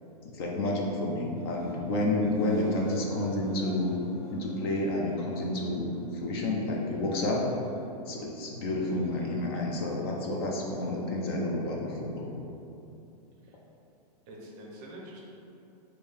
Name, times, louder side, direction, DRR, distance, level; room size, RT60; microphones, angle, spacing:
voice 1, 0.2-5.9 6.2-7.4 8.1-12.3, left 1 dB, 35° left, -1 dB, 0.5 m, -30 dB
sound 1, 1.4-1.8 2.2-7.9 8.6-11.5, equal, 55° left, 1.0 m, -45 dB
voice 2, 14.3-15.2, right 1 dB, 30° right, -2 dB, 0.6 m, -46 dB
4.4 x 2.7 x 3.3 m, 2.7 s
supercardioid pair, 165°, 21 cm